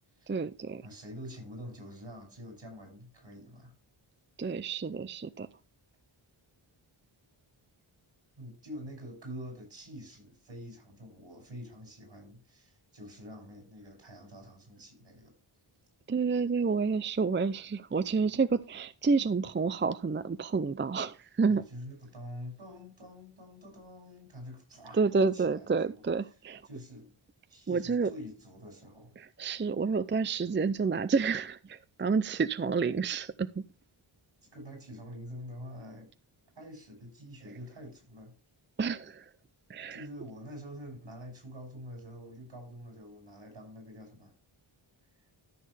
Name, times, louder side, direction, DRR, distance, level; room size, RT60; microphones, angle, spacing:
voice 1, 0.3-0.8 4.4-5.5 16.1-21.6 24.9-26.6 27.7-28.1 29.2-33.6 38.8-39.3 39.7-40.0, right 4 dB, 25° right, 0.5 m, -29 dB
voice 2, 0.8-3.7 8.4-15.3 21.5-26.0 26.7-27.1 27.5-29.2 34.4-36.1 36.6-38.3 39.9-44.3, equal, 70° right, 6.6 m, -46 dB
13.5 x 6.5 x 3.4 m
wide cardioid pair, 80°, 49 cm